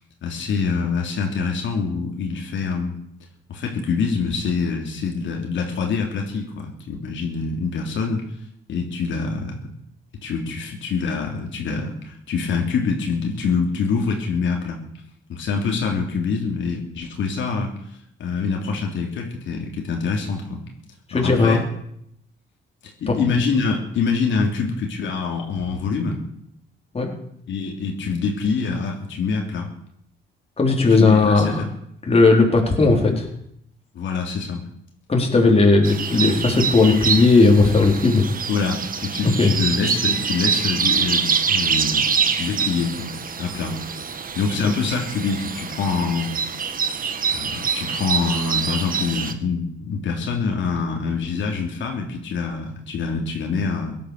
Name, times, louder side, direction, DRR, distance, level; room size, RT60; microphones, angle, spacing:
voice 1, 0.2-3.0 3.5-8.2 8.7-9.7 10.2-14.8 15.3-20.6 21.1-21.6 22.8-26.2 27.5-29.7 31.0-31.7 33.9-34.6 38.5-43.8 44.1-46.3 47.3-54.0, left 5 dB, 70° left, 1 dB, 3.3 m, -25 dB
voice 2, 21.1-21.6 23.1-23.2 26.9-27.1 30.6-31.6 32.0-33.3 35.1-38.2 39.4-39.6 44.6-44.7, left 3 dB, 30° left, 1 dB, 4.0 m, -16 dB
sound 1, 35.8-49.3, right 6 dB, 45° right, 1.6 m, -25 dB
17.5 x 11.5 x 6.7 m, 0.72 s
cardioid pair, 90°, 20 cm